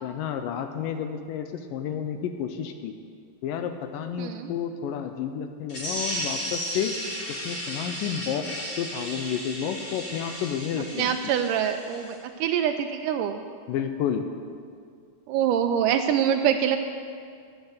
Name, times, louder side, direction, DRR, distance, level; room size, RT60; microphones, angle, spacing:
voice 1, 0.0-2.9 3.4-6.9 7.3-8.5 8.7-11.2 13.7-14.3, left 8 dB, 80° left, 7 dB, 2.1 m, -31 dB
voice 2, 4.2-4.5 10.9-13.4 15.3-16.8, right 9 dB, 85° right, 6 dB, 1.8 m, -25 dB
sound 1, 5.7-12.1, equal, 40° left, 4.9 m, -34 dB
10.0 x 9.0 x 7.9 m, 2.2 s
omnidirectional pair, 4.2 m